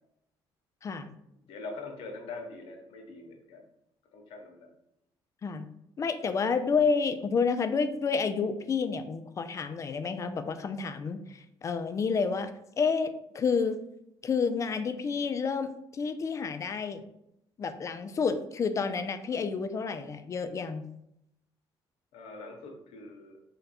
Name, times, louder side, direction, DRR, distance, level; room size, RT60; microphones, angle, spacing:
voice 1, 1.5-3.6 4.1-4.7 19.3-19.4 22.1-23.5, left 3 dB, 75° left, 3 dB, 0.9 m, -43 dB
voice 2, 6.0-12.5 12.8-13.8 14.2-17.0 17.6-20.8, left 5 dB, 30° left, 9 dB, 0.3 m, -29 dB
3.8 x 2.2 x 4.1 m, 0.78 s
cardioid pair, 120°, 10 cm